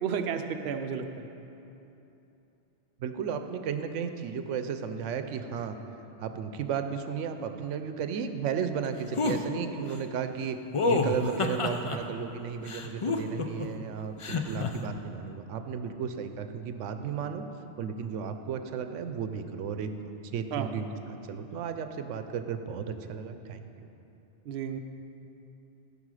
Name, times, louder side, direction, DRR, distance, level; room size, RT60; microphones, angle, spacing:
voice 1, 0.0-1.3 20.5-20.7 24.5-24.8, right 7 dB, 60° right, 6 dB, 0.7 m, -32 dB
voice 2, 3.0-5.8 6.2-10.6 10.8-17.4 17.8-19.9 20.3-20.9 21.3-23.9, right 7 dB, 85° right, 8 dB, 1.0 m, -34 dB
sound 1, 9.1-9.4 10.7-12.0 12.7-13.7 14.2-14.7, left 4 dB, 45° left, 0.4 m, -28 dB
15.0 x 5.5 x 4.9 m, 2.9 s
omnidirectional pair, 1.2 m